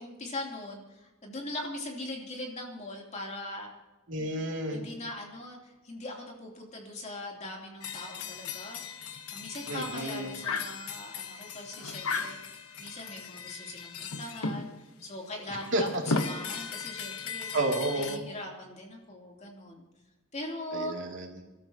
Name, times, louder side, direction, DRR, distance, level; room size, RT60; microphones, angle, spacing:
voice 1, 0.0-3.7 4.2-4.3 4.7-14.7 15.0-15.9 16.2-17.5 17.9-19.8 20.3-20.9, left 1 dB, 35° left, -1 dB, 3.3 m, -41 dB
voice 2, 4.1-4.8 9.7-10.4 15.5-15.8 17.5-18.2 20.7-21.4, right 2 dB, 60° right, 0 dB, 2.8 m, -31 dB
sound 1, 7.8-14.8 15.5-18.2, left 4 dB, 80° left, 1.3 m, -36 dB
27.5 x 13.0 x 3.0 m, 1.1 s
head